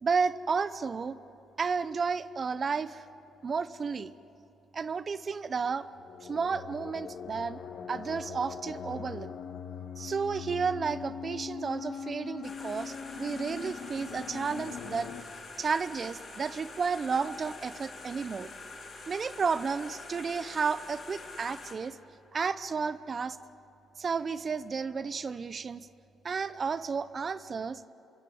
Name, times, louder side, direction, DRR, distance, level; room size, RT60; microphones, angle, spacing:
voice 1, 0.0-1.2 1.6-3.0 3.4-4.1 4.7-5.9 6.2-7.6 7.9-9.3 10.0-15.1 15.6-18.5 19.1-22.0 22.3-23.4 24.0-25.9 26.2-27.9, right 5 dB, 40° right, 14 dB, 0.8 m, -32 dB
sound 1, 5.8-15.2, left 7 dB, 75° left, 1.6 m, -41 dB
sound 2, 12.4-21.7, left 3 dB, 50° left, 6.7 m, -46 dB
27.5 x 22.5 x 7.9 m, 2.9 s
cardioid pair, 90°, 0 cm